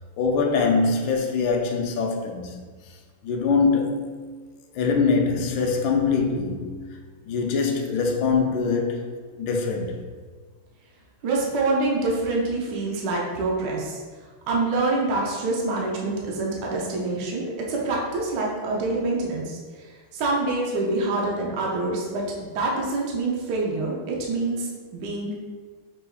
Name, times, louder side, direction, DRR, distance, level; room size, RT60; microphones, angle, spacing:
voice 1, 0.2-2.6 3.2-4.2 4.7-7.0 7.2-9.1 9.3-10.1, left 4 dB, 75° left, 1.2 m, -23 dB
voice 2, 11.2-14.0 14.5-22.3 22.5-25.3, right 2 dB, 65° right, 1.1 m, -26 dB
5.9 x 3.4 x 2.3 m
omnidirectional pair, 2.4 m